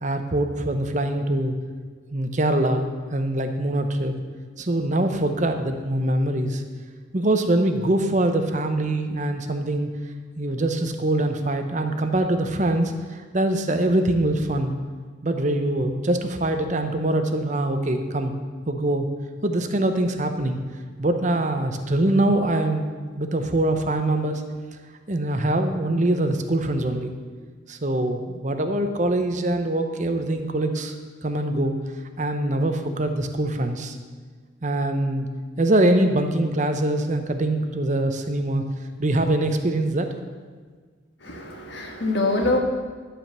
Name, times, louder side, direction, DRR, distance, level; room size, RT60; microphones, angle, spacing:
voice 1, 0.0-1.5 2.1-4.1 4.6-6.6 7.1-9.9 10.4-14.8 15.2-18.3 18.7-19.1 19.4-20.6 21.0-22.9 23.2-24.4 25.1-27.1 27.7-30.9 31.2-31.8 32.2-34.0 34.6-35.3 35.6-38.6 39.0-40.1, right 1 dB, 35° right, 7 dB, 0.8 m, -23 dB
voice 2, 41.2-42.6, left 2 dB, 60° left, 1 dB, 1.4 m, -24 dB
12.0 x 5.1 x 7.3 m, 1.5 s
head